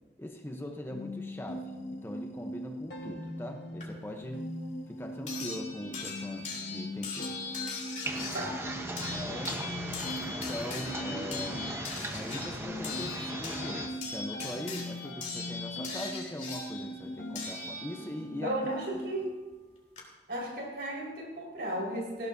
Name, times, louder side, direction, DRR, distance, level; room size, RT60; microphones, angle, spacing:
voice 1, 0.2-4.5 4.9-7.6 9.1-9.6 10.2-11.6 12.1-18.6 18.9-19.0, left 1 dB, 15° left, 3 dB, 0.8 m, -41 dB
sound 1, 0.9-19.3, equal, 70° left, 1.5 m, -41 dB
sound 2, 3.8-3.9 5.3-18.3 19.5-19.6 20.0-20.1, left 4 dB, 45° left, 3.2 m, -40 dB
sound 3, 8.0-13.9, right 1 dB, 15° right, 1.0 m, -38 dB
voice 2, 18.4-19.3 20.3-22.3, right 1 dB, 65° right, -2 dB, 4.8 m, -34 dB
19.0 x 16.0 x 2.7 m, 1.2 s
head